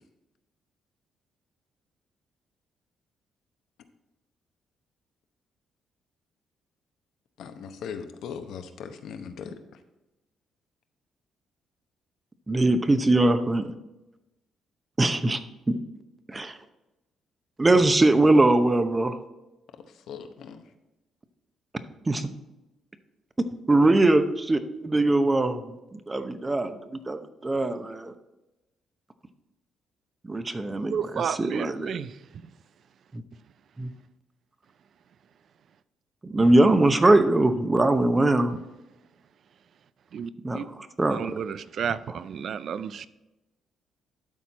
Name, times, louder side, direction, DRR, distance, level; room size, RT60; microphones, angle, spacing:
voice 1, 7.4-9.5 20.1-20.6, left 7 dB, 80° left, 0.8 m, -39 dB
voice 2, 12.5-13.7 15.0-15.4 15.7-15.8 16.3-16.6 17.6-19.2 22.1-22.3 23.7-26.8 27.1-28.1 30.3-31.0 31.4-32.0 33.1-33.2 33.8-33.9 36.2-38.5 40.4-40.6 41.0-41.3, right 2 dB, 20° right, 0.8 m, -21 dB
voice 3, 30.9-32.2 40.1-40.6 41.1-43.1, right 7 dB, 60° right, 0.4 m, -32 dB
12.0 x 4.3 x 4.2 m
cardioid pair, 90°, 0 cm